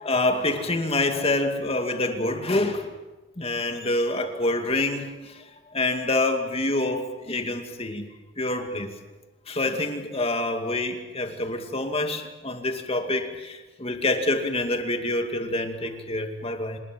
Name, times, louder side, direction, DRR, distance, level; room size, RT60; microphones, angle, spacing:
voice 1, 0.0-2.9 3.4-5.1 5.3-5.4 5.7-8.1 8.4-8.9 9.5-16.8, left 2 dB, 30° left, 5 dB, 2.4 m, -26 dB
26.0 x 20.0 x 7.7 m, 1.2 s
head